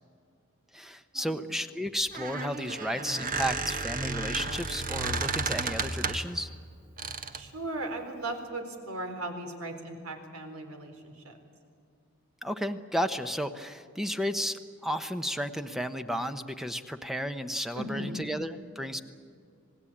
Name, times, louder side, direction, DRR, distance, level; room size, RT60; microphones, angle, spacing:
voice 1, 0.7-6.5 12.4-19.0, equal, ahead, 9 dB, 0.9 m, -33 dB
Squeak, 2.0-6.4 7.0-7.5, right 4 dB, 40° right, 1.4 m, -33 dB
voice 2, 7.3-11.4 17.7-18.3, right 2 dB, 85° right, 6 dB, 4.1 m, -37 dB
27.0 x 19.0 x 8.6 m, 2.3 s
head